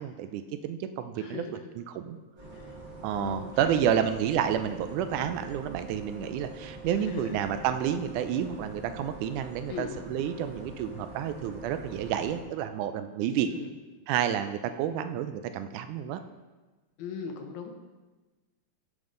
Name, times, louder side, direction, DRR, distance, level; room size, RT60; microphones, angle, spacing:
voice 1, 0.0-1.4 1.8-2.2 3.0-13.5 14.1-16.2, right 9 dB, 85° right, 9 dB, 2.1 m, -30 dB
voice 2, 1.2-1.7 2.5-2.8 3.1-4.1 7.0-7.4 9.7-10.0 13.5-13.7 17.0-17.7, left 6 dB, 75° left, 3 dB, 2.2 m, -39 dB
sound 1, 2.4-12.4, right 2 dB, 30° right, 0.9 m, -45 dB
14.0 x 5.4 x 3.8 m, 1.2 s
omnidirectional pair, 3.5 m